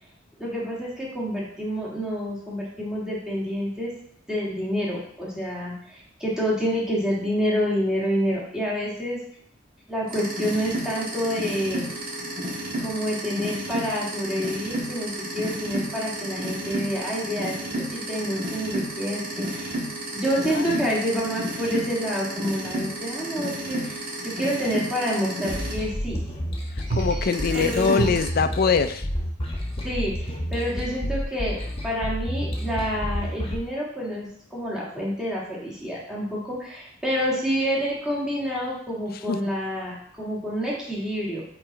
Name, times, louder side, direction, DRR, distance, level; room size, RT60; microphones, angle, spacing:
voice 1, 0.4-3.9 4.3-9.2 9.9-11.9 12.8-19.7 20.1-26.2 27.5-28.1 29.8-31.6 31.8-41.4, equal, 5° right, -6 dB, 1.7 m, -28 dB
sound 1, 10.1-25.7 26.9-28.3, right 1 dB, 50° right, 1.5 m, -31 dB
voice 2, 20.5-20.9 27.0-29.1 39.3-39.4, left 5 dB, 50° left, 10 dB, 0.4 m, -23 dB
sound 2, 25.5-33.6, equal, 30° left, 1.1 m, -30 dB
5.6 x 4.0 x 4.5 m, 0.64 s
head